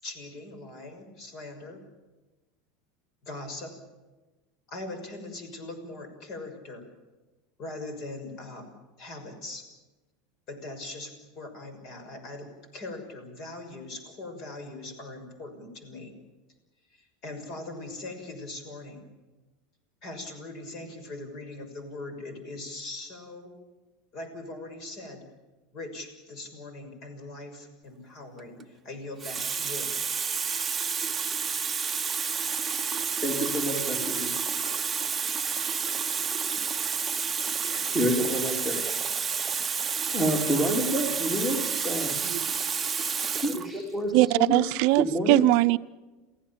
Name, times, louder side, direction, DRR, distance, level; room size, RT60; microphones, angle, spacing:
voice 1, 0.0-1.8 3.2-3.7 4.7-6.9 7.6-9.6 10.5-16.1 16.9-19.1 20.0-23.5 24.1-25.2 25.7-29.9, left 2 dB, 45° left, 7 dB, 6.2 m, -41 dB
Water tap faucet, 28.4-28.6 29.2-43.7 44.6-44.8, right 6 dB, 15° right, 0.9 m, -30 dB
voice 2, 33.2-34.3 37.6-38.9 39.7-42.2 43.4-44.6 45.0-45.4, equal, 10° left, 1 dB, 3.4 m, -28 dB
voice 3, 44.1-45.8, right 20 dB, 60° right, 14 dB, 0.7 m, -21 dB
28.5 x 16.0 x 7.3 m, 1.2 s
supercardioid pair, 145°, 0 cm